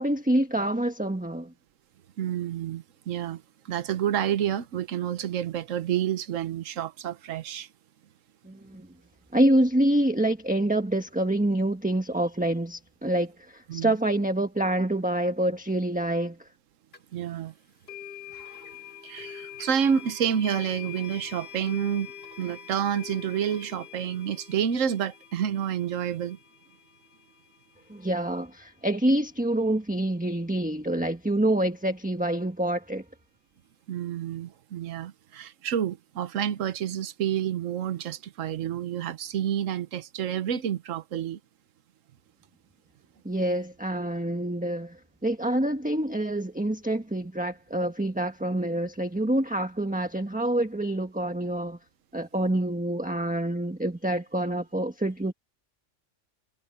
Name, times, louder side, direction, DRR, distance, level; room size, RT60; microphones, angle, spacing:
voice 1, 0.0-1.5 8.4-8.9 9.3-16.4 27.9-33.0 43.2-51.8 52.1-55.3, right 1 dB, 5° right, 1.3 m, -26 dB
voice 2, 2.2-7.7 13.7-13.9 17.1-17.5 18.3-18.6 19.0-22.1 22.4-26.4 33.9-41.4, right 9 dB, 80° right, 1.3 m, -29 dB
sound 1, 16.9-17.0 17.9-28.9, left 9 dB, 50° left, 2.9 m, -45 dB
omnidirectional pair, 1.3 m